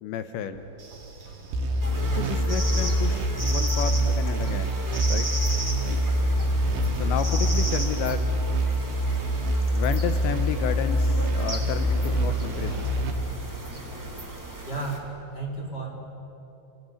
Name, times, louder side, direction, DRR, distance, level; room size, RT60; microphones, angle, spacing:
voice 1, 0.0-0.6 2.1-4.8 5.1-5.3 6.9-8.3 9.7-12.9, left 9 dB, 75° left, 10 dB, 2.9 m, -32 dB
Train / Sliding door, 0.5-4.6 5.4-10.2 11.1-15.0, right 3 dB, 35° right, 3.4 m, -41 dB
sound 1, 1.5-13.1, equal, 70° right, 3.3 m, -25 dB
sound 2, 1.8-15.0, right 1 dB, 10° right, 1.1 m, -36 dB
voice 2, 14.6-16.0, right 3 dB, 25° left, -2 dB, 3.2 m, -33 dB
25.5 x 17.0 x 9.8 m, 2.9 s
omnidirectional pair, 5.8 m